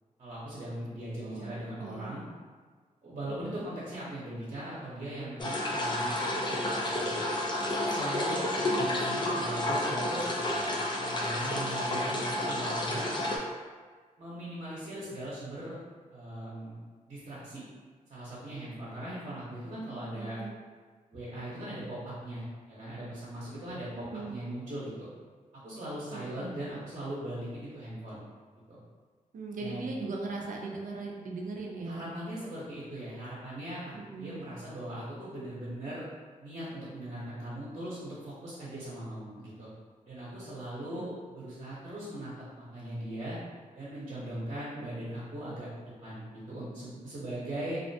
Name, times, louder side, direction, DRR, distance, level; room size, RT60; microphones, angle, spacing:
voice 1, 0.2-2.2 3.0-7.2 7.8-10.2 11.0-13.1 14.2-15.8 16.1-16.8 17.1-17.6 18.1-20.4 21.1-25.1 25.5-28.2 28.7-28.8 29.6-29.9 31.8-33.9 34.2-36.1 36.4-39.7 40.0-43.4 43.7-47.8, right 1 dB, 50° right, -9 dB, 0.8 m, -39 dB
voice 2, 1.2-2.1 3.3-3.6 8.7-8.8 19.4-20.5 24.0-24.4 26.1-26.5 29.3-32.1 33.9-34.4 40.8-41.1, right 3 dB, 70° right, 0 dB, 0.5 m, -40 dB
sound 1, 5.4-13.4, left 1 dB, 35° left, 0.5 m, -30 dB
2.4 x 2.1 x 2.7 m, 1.5 s
cardioid pair, 60°, 14 cm